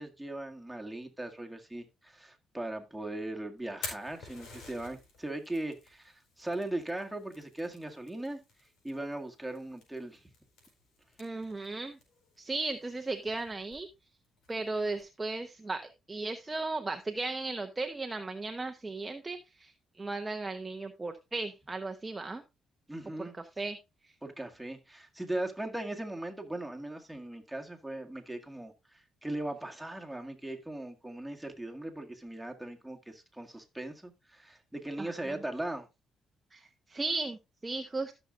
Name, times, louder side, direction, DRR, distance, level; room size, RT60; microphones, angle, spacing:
voice 1, 0.0-8.4 8.8-10.2 22.9-23.3 24.2-35.9, right 1 dB, 5° right, 2.0 m, -39 dB
Fire, 3.6-15.0, left 3 dB, 85° left, 4.8 m, -51 dB
voice 2, 11.2-12.0 12.4-13.9 14.5-15.8 16.1-22.4 23.2-23.3 23.6-23.8 35.0-35.1 36.5-38.1, right 3 dB, 20° right, 0.9 m, -36 dB
14.5 x 6.4 x 2.6 m
cardioid pair, 90°, 0 cm